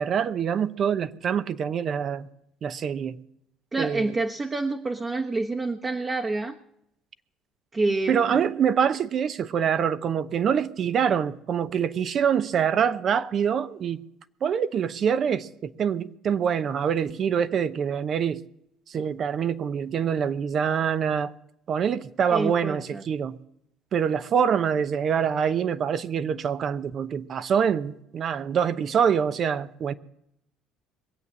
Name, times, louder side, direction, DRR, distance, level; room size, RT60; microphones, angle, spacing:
voice 1, 0.0-2.3 2.6-3.2 3.8-4.1 8.1-14.0 14.4-18.4 18.9-21.3 21.7-23.4 23.9-29.9, right 7 dB, 50° right, 0.8 m, -25 dB
voice 2, 3.7-6.5 7.7-8.4 22.3-23.0, right 3 dB, 25° right, 1.2 m, -28 dB
21.5 x 8.1 x 7.4 m
supercardioid pair, 80°, 0 cm